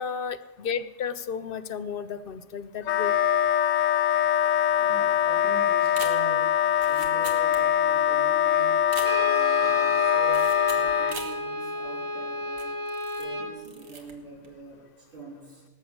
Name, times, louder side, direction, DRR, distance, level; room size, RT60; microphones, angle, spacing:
voice 1, 0.0-3.2 11.0-11.1, left 6 dB, 55° left, 15 dB, 0.8 m, -33 dB
Wind instrument woodwind instrument, 2.8-11.2, left 10 dB, 85° left, 1.0 m, -23 dB
voice 2, 4.8-8.9 9.2-12.8 13.2-15.7, right 2 dB, 45° right, -3 dB, 3.6 m, -43 dB
sound 1, 5.8-8.0 8.3-8.4 8.8-9.5 10.3-11.4 11.9-12.0 12.5-13.3 13.6-14.1 14.4-14.7, right 3 dB, 85° right, 2.1 m, -41 dB
Brass instrument, 9.0-13.6, equal, 15° right, 2.3 m, -32 dB
18.0 x 7.2 x 7.9 m, 1.2 s
omnidirectional pair, 1.3 m